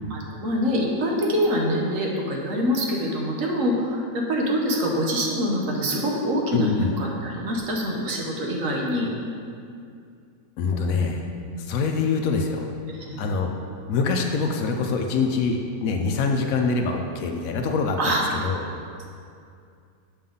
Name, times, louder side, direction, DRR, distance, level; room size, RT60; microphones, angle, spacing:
voice 1, 0.1-9.1 10.7-11.0 11.5-11.6 13.1-13.2 18.0-18.2, equal, 60° right, -1 dB, 1.2 m, -25 dB
voice 2, 6.5-6.9 10.6-11.3 11.6-12.7 13.2-13.5 13.9-18.6, left 4 dB, 70° left, 3 dB, 0.9 m, -24 dB
6.8 x 5.6 x 3.7 m, 2.4 s
omnidirectional pair, 1.6 m